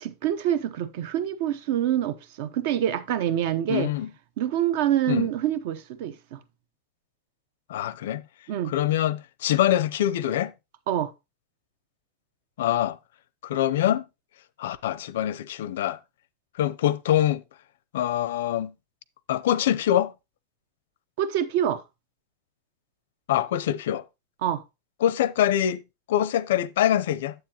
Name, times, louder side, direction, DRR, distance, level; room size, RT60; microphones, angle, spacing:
voice 1, 0.0-3.9 4.4-6.4 8.5-8.7 10.9-11.1 21.2-21.8 24.4-24.6, right 11 dB, 60° right, 0.8 m, -26 dB
voice 2, 3.7-4.1 5.1-5.3 7.7-8.2 8.6-10.5 12.6-13.0 13.4-14.0 14.6-16.0 16.6-17.4 17.9-18.7 19.3-20.1 23.3-24.0 25.0-25.8 26.1-27.3, left 11 dB, 90° left, 0.6 m, -24 dB
9.5 x 7.8 x 2.9 m
supercardioid pair, 160°, 0 cm